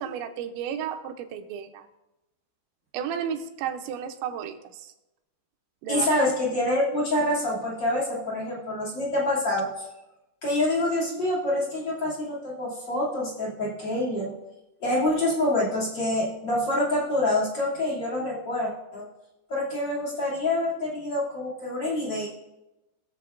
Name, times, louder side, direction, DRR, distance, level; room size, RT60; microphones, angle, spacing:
voice 1, 0.0-1.9 2.9-4.9 5.8-6.1, right 8 dB, 85° right, 7 dB, 3.1 m, -33 dB
voice 2, 5.9-9.8 10.4-14.3 14.8-19.0 19.5-22.3, left 1 dB, 30° left, -5 dB, 2.5 m, -26 dB
22.0 x 7.5 x 2.5 m, 0.97 s
omnidirectional pair, 5.2 m